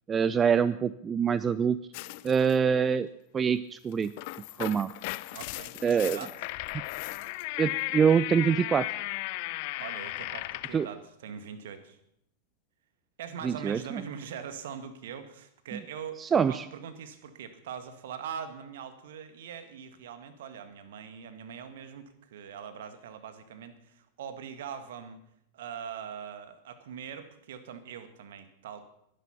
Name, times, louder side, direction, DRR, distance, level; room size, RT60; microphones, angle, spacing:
voice 1, 0.1-1.8 2.2-3.1 3.3-4.1 4.6-4.9 5.8-6.2 7.6-9.0 10.7-10.9 13.4-14.0 15.7-15.8 16.2-16.6, right 7 dB, 20° right, 17 dB, 0.5 m, -25 dB
sound 1, 1.9-2.6 3.9-10.9, left 19 dB, 45° left, 0.6 m, -36 dB
voice 2, 5.3-6.3 9.8-12.0 13.2-25.2 25.5-28.8, right 7 dB, 55° right, 10 dB, 1.9 m, -42 dB
21.0 x 10.5 x 5.9 m, 0.77 s
figure-of-eight pair, 90°, 0 cm